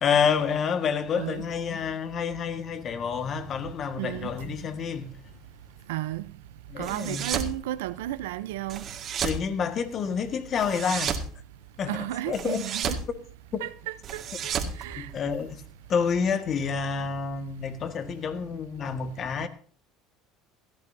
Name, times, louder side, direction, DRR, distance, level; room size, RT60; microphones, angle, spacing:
voice 1, 0.0-5.2 6.7-7.4 9.2-11.2 11.8-11.9 12.3-12.6 15.0-15.6 15.9-19.5, left 6 dB, 45° left, 1.6 m, -28 dB
voice 2, 4.0-4.3 5.9-6.2 6.8-8.9 11.9-13.0 13.6-15.1, right 14 dB, 85° right, 0.7 m, -33 dB
sound 1, 6.8-7.5 8.7-9.4 10.6-11.3 12.3-13.1 14.0-15.5, right 7 dB, 45° right, 1.9 m, -32 dB
17.0 x 14.5 x 2.7 m
supercardioid pair, 90°, 0 cm